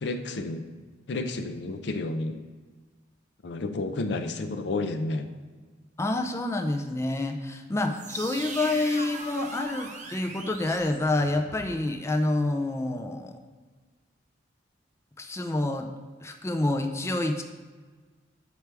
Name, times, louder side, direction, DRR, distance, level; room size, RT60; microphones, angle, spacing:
voice 1, 0.0-0.6 1.1-2.4 3.4-5.3, left 2 dB, 65° left, 7 dB, 0.5 m, -31 dB
voice 2, 6.0-13.4 15.2-15.9 16.2-17.4, left 2 dB, 15° left, 4 dB, 0.4 m, -28 dB
sound 1, 7.9-11.7, right 3 dB, 40° right, 0.7 m, -40 dB
7.9 x 4.6 x 3.4 m, 1.4 s
head